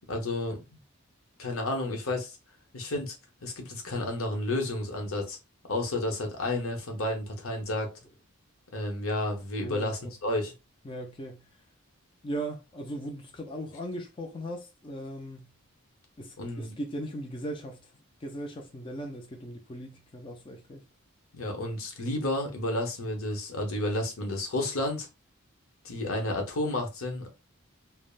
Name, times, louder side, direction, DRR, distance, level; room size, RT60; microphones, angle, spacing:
voice 1, 0.1-0.6 1.4-2.4 2.7-3.1 3.4-5.4 5.7-7.9 8.7-10.5 16.4-16.7 21.3-25.1 25.8-27.3, left 1 dB, 80° left, 0.9 m, -31 dB
voice 2, 9.6-10.1 10.8-11.5 12.2-15.5 16.2-17.9 18.2-20.8, right 1 dB, 25° left, 0.4 m, -38 dB
3.4 x 2.0 x 2.4 m
head